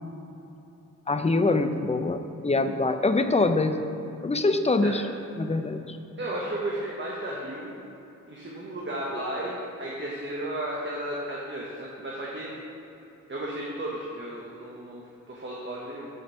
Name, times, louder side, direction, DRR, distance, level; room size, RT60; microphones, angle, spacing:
voice 1, 1.1-3.8 4.2-5.0 5.4-6.0, left 3 dB, 20° left, 8 dB, 0.5 m, -24 dB
voice 2, 6.2-7.7 8.3-12.5 13.3-15.0 15.3-16.1, right 1 dB, 35° right, -4 dB, 1.1 m, -34 dB
6.5 x 5.2 x 6.7 m, 2.9 s
wide cardioid pair, 90°, 33 cm